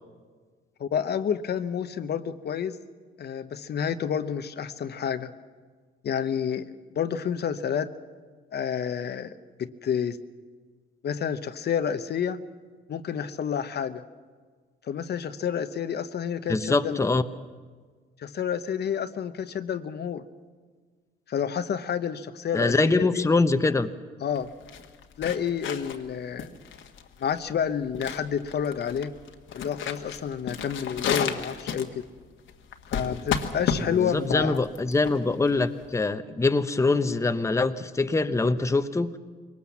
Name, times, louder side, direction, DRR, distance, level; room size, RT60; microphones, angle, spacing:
voice 1, 0.8-2.8 3.2-5.3 6.0-6.7 7.0-7.9 8.5-9.3 9.6-10.2 11.0-12.4 12.9-14.0 14.9-17.0 18.2-20.2 21.3-23.3 24.2-24.5 25.2-26.5 27.2-29.1 29.5-32.0 32.9-34.6, left 8 dB, 55° left, 10 dB, 0.9 m, -29 dB
voice 2, 16.5-17.2 22.5-23.9 33.8-39.2, left 3 dB, 15° left, 9 dB, 0.9 m, -24 dB
sound 1, 24.4-36.0, left 7 dB, 75° left, 1.6 m, -33 dB
22.0 x 19.0 x 7.2 m, 1.5 s
cardioid pair, 90°, 20 cm